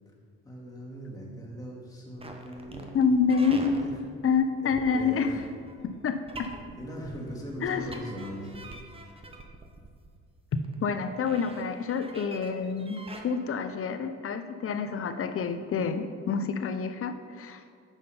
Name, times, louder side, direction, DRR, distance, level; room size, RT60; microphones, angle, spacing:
voice 1, 0.4-2.9 3.8-3.9 4.9-5.4 6.8-8.5, equal, 10° left, -4 dB, 2.2 m, -39 dB
sound 1, 2.2-13.2, right 1 dB, 20° right, 1.0 m, -44 dB
voice 2, 2.9-3.8 4.2-5.3 5.8-6.5 7.6-8.0 10.8-17.6, left 5 dB, 45° left, 9 dB, 0.7 m, -28 dB
7.3 x 5.5 x 5.6 m, 2.2 s
cardioid pair, 90°, 30 cm